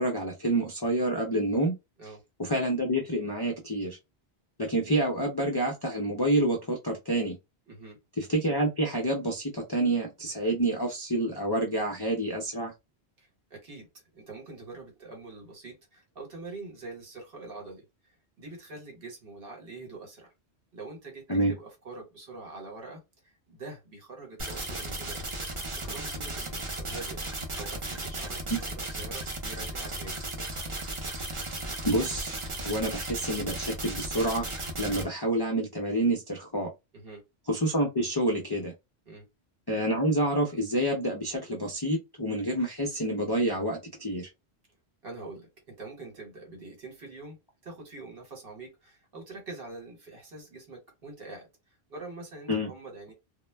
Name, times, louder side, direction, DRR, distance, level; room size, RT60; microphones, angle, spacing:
voice 1, 0.0-1.7 2.4-4.0 4.6-7.4 8.2-12.7 21.3-21.5 31.4-32.3 32.6-34.5 34.8-36.7 37.5-38.7 39.7-44.3 52.5-52.7, right 1 dB, 35° left, 0.4 m, -28 dB
voice 2, 7.7-8.0 13.2-13.9 14.1-17.8 18.4-20.3 20.7-25.3 25.7-27.2 27.6-30.2 36.9-37.2 39.1-39.2 45.0-47.4 47.6-51.5 51.9-53.1, right 3 dB, 60° right, 1.2 m, -44 dB
sound 1, 24.4-35.0, right 2 dB, 35° right, 0.6 m, -35 dB
2.1 x 2.0 x 3.2 m
omnidirectional pair, 1.1 m